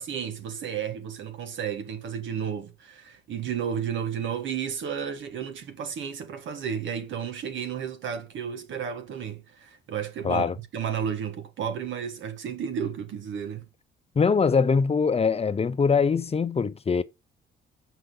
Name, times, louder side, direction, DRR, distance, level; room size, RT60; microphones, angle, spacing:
voice 1, 0.0-13.7, right 8 dB, 75° right, 1.6 m, -32 dB
voice 2, 14.2-17.0, left 5 dB, 30° left, 0.7 m, -22 dB
8.0 x 5.0 x 3.9 m
cardioid pair, 90°, 20 cm